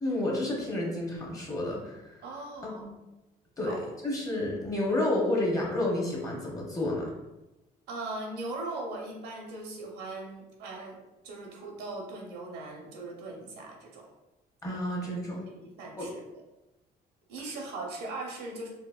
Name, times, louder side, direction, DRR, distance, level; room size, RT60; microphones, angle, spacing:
voice 1, 0.0-2.2 2.6-2.9 3.6-3.7 4.0-7.1 14.6-15.4 16.0-16.1, left 1 dB, 20° left, -3 dB, 0.9 m, -30 dB
voice 2, 2.2-2.9 3.7-3.8 7.9-11.0 11.2-14.1 14.7-14.8 15.5-16.2 17.3-18.7, right 2 dB, 90° right, -1 dB, 0.8 m, -39 dB
4.0 x 2.1 x 2.4 m, 0.99 s
cardioid pair, 110°, 17 cm